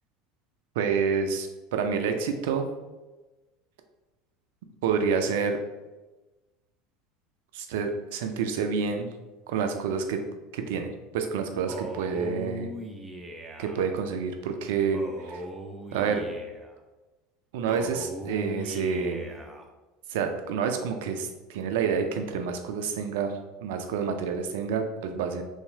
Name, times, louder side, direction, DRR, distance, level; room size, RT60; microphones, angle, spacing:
voice 1, 0.8-2.7 4.8-5.6 7.5-9.1 9.5-10.2 10.5-12.7 13.6-15.4 15.9-16.3 17.5-19.3 20.1-23.3 23.6-25.4, right 6 dB, 70° right, 5 dB, 0.4 m, -28 dB
Male speech man speaking, 11.7-13.9 14.9-16.8 17.7-19.7, right 1 dB, 15° right, 0.5 m, -39 dB
3.1 x 2.8 x 2.6 m, 1.1 s
hypercardioid pair, 80°, 0 cm